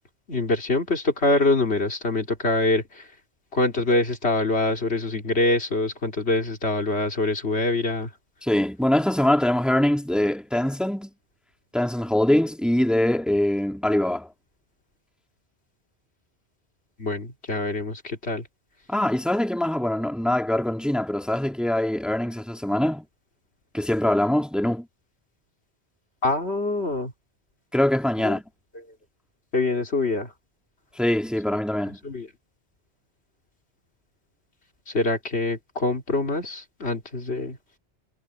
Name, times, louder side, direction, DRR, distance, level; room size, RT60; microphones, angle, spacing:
voice 1, 0.3-2.8 3.5-8.1 17.0-18.4 26.2-27.1 28.2-28.3 29.5-30.3 32.0-32.3 34.9-37.6, left 2 dB, 75° left, 3.1 m, -24 dB
voice 2, 8.4-11.1 11.7-14.3 18.9-23.0 23.7-24.9 27.7-28.4 31.0-32.0, left 1 dB, ahead, 2.1 m, -23 dB
omnidirectional pair, 1.1 m